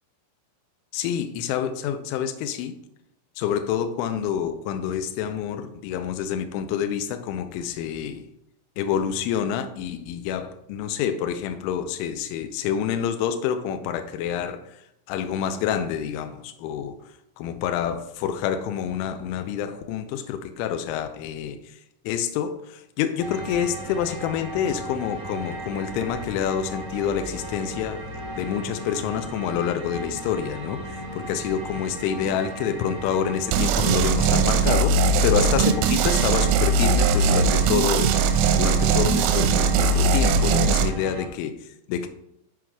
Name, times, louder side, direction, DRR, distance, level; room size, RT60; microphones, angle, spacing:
voice 1, 0.9-2.8 3.4-8.3 8.8-14.8 15.1-17.0 17.4-21.8 22.1-28.0 28.4-38.3 38.6-42.1, left 8 dB, 85° left, 8 dB, 3.0 m, -27 dB
sound 1, 23.2-41.3, right 1 dB, 55° right, 0.8 m, -36 dB
sound 2, 33.5-40.9, right 4 dB, 90° right, 3.1 m, -20 dB
7.6 x 6.2 x 4.6 m, 0.78 s
omnidirectional pair, 5.6 m